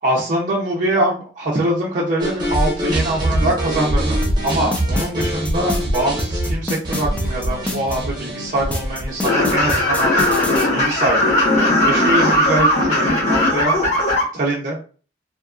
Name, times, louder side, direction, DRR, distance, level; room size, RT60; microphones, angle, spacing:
voice 1, 0.0-10.1 10.7-11.3 11.8-13.8 14.3-14.8, right 1 dB, 45° right, -5 dB, 0.5 m, -23 dB
sound 1, 2.2-10.3, right 1 dB, 25° right, 0.9 m, -23 dB
sound 2, 4.2-8.0 8.7-10.7, left 1 dB, 5° left, 0.4 m, -26 dB
sound 3, 9.2-14.2, left 1 dB, 45° left, 1.1 m, -17 dB
2.8 x 2.3 x 2.3 m, 0.38 s
head